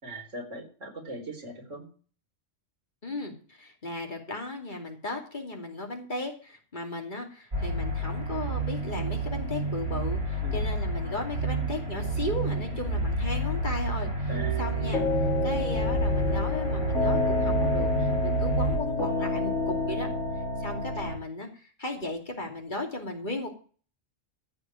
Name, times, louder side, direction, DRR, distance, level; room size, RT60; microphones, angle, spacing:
voice 1, 0.0-1.9 10.4-10.6 14.3-14.6, right 1 dB, 80° right, 1 dB, 4.1 m, -40 dB
voice 2, 3.0-20.1 20.6-23.5, left 2 dB, 40° left, 2 dB, 2.9 m, -36 dB
sound 1, 7.5-18.8, right 2 dB, 55° right, 4.5 m, -29 dB
sound 2, 14.3-21.2, left 3 dB, 70° left, 3.7 m, -29 dB
14.5 x 5.2 x 8.9 m, 0.41 s
omnidirectional pair, 1.3 m